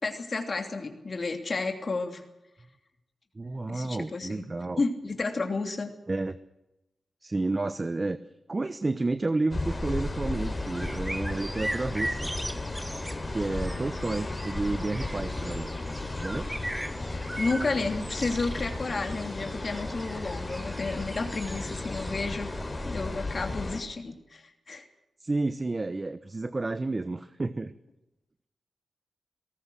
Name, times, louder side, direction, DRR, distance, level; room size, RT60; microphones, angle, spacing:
voice 1, 0.0-2.2 3.7-4.4 4.8-5.9 17.0-22.5 22.8-24.9, left 3 dB, 50° left, 4 dB, 3.0 m, -32 dB
voice 2, 3.3-4.8 6.1-6.4 7.2-8.2 8.5-12.3 13.3-15.7 16.2-16.5 25.2-27.7, right 2 dB, 35° right, 12 dB, 1.0 m, -31 dB
sound 1, 9.5-23.8, left 2 dB, 30° left, 4.2 m, -34 dB
sound 2, 10.4-22.2, right 1 dB, 10° right, 1.5 m, -40 dB
20.0 x 18.0 x 7.9 m, 0.92 s
supercardioid pair, 40°, 0 cm